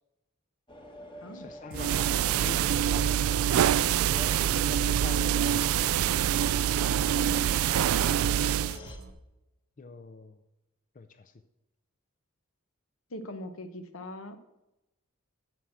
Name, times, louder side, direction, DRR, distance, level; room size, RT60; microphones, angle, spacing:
sound 1, 0.7-9.0, left 1 dB, 25° left, 1.3 m, -47 dB
voice 1, 1.3-5.6 8.4-8.7 9.8-10.4 10.9-11.3, left 3 dB, 40° left, 10 dB, 0.5 m, -46 dB
sound 2, 1.7-9.1, right 2 dB, 70° right, 1.3 m, -47 dB
sound 3, 1.7-8.8, right 10 dB, 90° right, 0.3 m, -25 dB
voice 2, 13.1-14.4, left 1 dB, 75° left, 9 dB, 1.0 m, -41 dB
9.2 x 6.2 x 7.8 m, 0.95 s
head